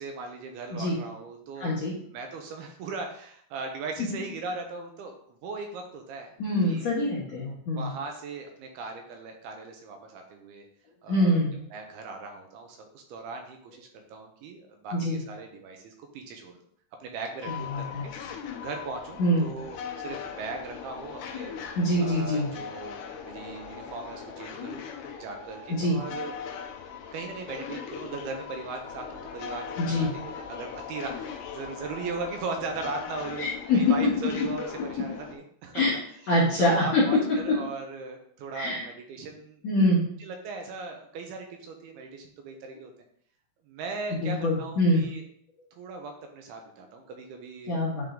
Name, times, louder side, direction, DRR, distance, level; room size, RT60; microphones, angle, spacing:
voice 1, 0.0-1.9 2.1-6.3 6.6-6.9 7.4-10.7 11.0-11.4 11.7-16.6 17.0-17.9 18.6-24.8 25.2-26.4 27.1-33.5 33.7-35.8 36.2-37.2 37.4-39.6 40.2-42.9 43.7-45.2 45.8-47.8, right 4 dB, 75° right, 3 dB, 2.7 m, -38 dB
voice 2, 1.6-2.0 6.4-7.9 11.1-11.5 14.9-15.2 17.5-18.0 19.2-19.5 21.8-22.5 25.7-26.0 29.8-30.1 33.4-34.1 35.0-35.1 35.7-36.0 36.3-37.1 37.5-37.6 38.5-38.8 39.6-40.0 44.1-45.1 47.7-48.0, left 1 dB, 55° left, -5 dB, 2.0 m, -24 dB
sound 1, 17.4-35.3, left 7 dB, 85° left, 1.7 m, -40 dB
10.0 x 3.8 x 3.8 m, 0.63 s
omnidirectional pair, 4.8 m